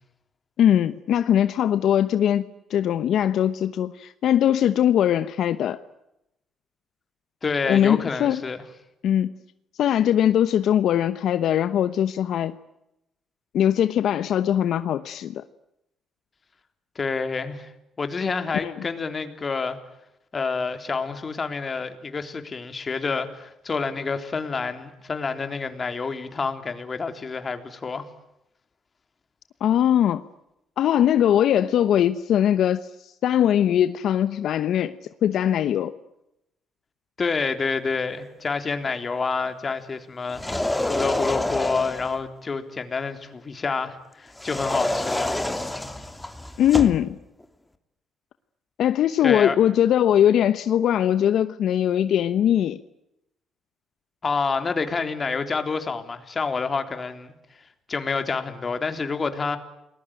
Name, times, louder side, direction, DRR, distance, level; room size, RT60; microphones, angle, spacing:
voice 1, 0.6-2.4 2.7-5.8 7.7-8.4 9.0-9.3 9.8-12.6 13.5-15.4 18.5-18.7 29.6-30.2 30.8-35.9 46.6-47.2 48.8-52.8, left 10 dB, 75° left, 1.0 m, -21 dB
voice 2, 7.4-8.6 17.0-17.7 18.0-19.8 20.3-28.0 37.2-45.5 49.2-49.6 54.2-57.3 57.9-59.6, left 4 dB, 35° left, 3.7 m, -28 dB
sound 1, 40.3-42.2 44.4-47.0, left 1 dB, 10° left, 2.9 m, -27 dB
30.0 x 21.0 x 9.1 m
cardioid pair, 90°, 0 cm